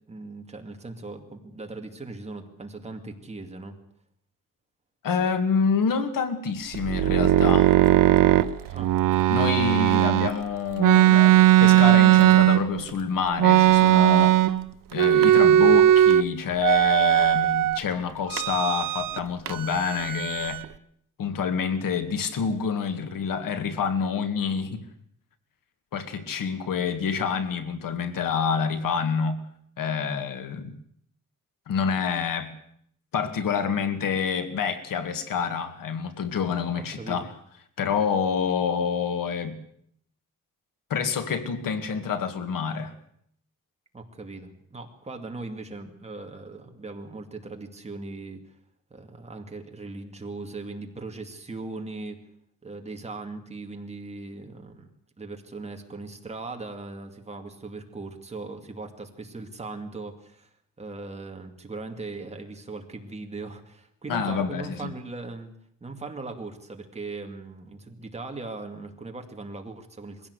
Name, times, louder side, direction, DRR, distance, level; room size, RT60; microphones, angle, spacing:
voice 1, 0.1-3.8 8.7-8.9 36.7-37.3 43.9-48.6 48.9-52.2 52.6-54.9 55.2-60.5 60.8-65.5 65.8-70.3, right 3 dB, 20° right, 4 dB, 2.4 m, -39 dB
voice 2, 5.0-7.8 9.3-14.3 14.9-20.6 21.2-24.9 25.9-29.4 29.8-30.8 31.7-32.5 33.1-37.3 37.8-39.5 40.9-42.9 64.1-64.9, left 6 dB, 85° left, 8 dB, 2.1 m, -27 dB
sound 1, 6.7-10.3 10.8-12.9 13.4-14.7 14.9-16.2 16.6-17.8 18.3-19.2 19.5-20.7, right 13 dB, 80° right, 0.9 m, -18 dB
22.0 x 16.0 x 8.2 m, 0.69 s
wide cardioid pair, 160°, 32 cm